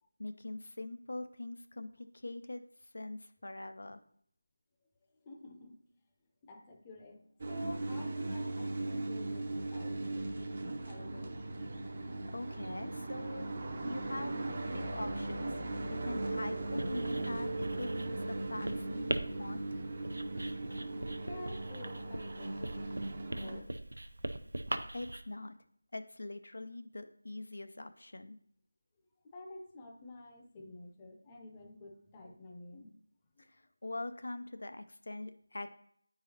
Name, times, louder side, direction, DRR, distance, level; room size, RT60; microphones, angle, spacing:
voice 1, 0.2-4.0 11.9-13.5 13.8-15.5 15.9-19.1 19.4-19.7 24.9-25.5 25.9-28.4 33.4-35.7, left 2 dB, 65° left, 9 dB, 0.4 m, -43 dB
voice 2, 5.2-5.8 6.4-11.4 21.1-23.7 29.3-32.9 33.4-33.5, left 1 dB, 15° left, 2 dB, 0.6 m, -50 dB
sound 1, 7.4-23.6, right 2 dB, 35° right, 0.7 m, -38 dB
Writing, 16.6-25.2, right 1 dB, 70° right, 0.5 m, -41 dB
9.1 x 4.8 x 2.8 m, 0.64 s
figure-of-eight pair, 165°, 0 cm